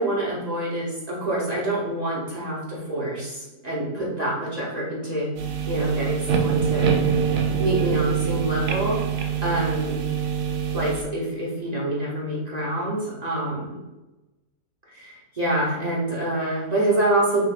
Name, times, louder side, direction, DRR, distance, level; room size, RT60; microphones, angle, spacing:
voice 1, 0.0-5.3 5.7-6.9 7.6-10.0 10.7-13.8 14.9-17.4, right 1 dB, 35° right, -6 dB, 0.8 m, -26 dB
sound 1, 5.4-11.0, right 7 dB, 85° right, 1.1 m, -24 dB
5.4 x 2.6 x 2.4 m, 1.0 s
omnidirectional pair, 1.6 m